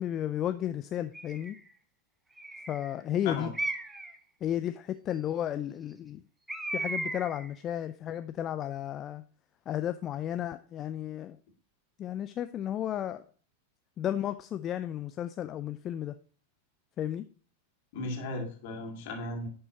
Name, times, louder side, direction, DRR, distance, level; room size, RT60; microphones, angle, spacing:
voice 1, 0.0-1.6 2.7-3.5 4.4-6.2 6.7-9.2 9.7-11.4 12.0-13.2 14.0-16.1 17.0-17.2, left 11 dB, 30° left, 10 dB, 0.4 m, -33 dB
Bird, 1.1-1.6 2.4-2.9 3.5-4.2 6.5-7.5, right 2 dB, 5° right, 0.7 m, -35 dB
voice 2, 17.9-19.5, left 2 dB, 50° left, 2 dB, 2.1 m, -36 dB
10.5 x 5.5 x 2.8 m, 0.41 s
figure-of-eight pair, 90°, 0 cm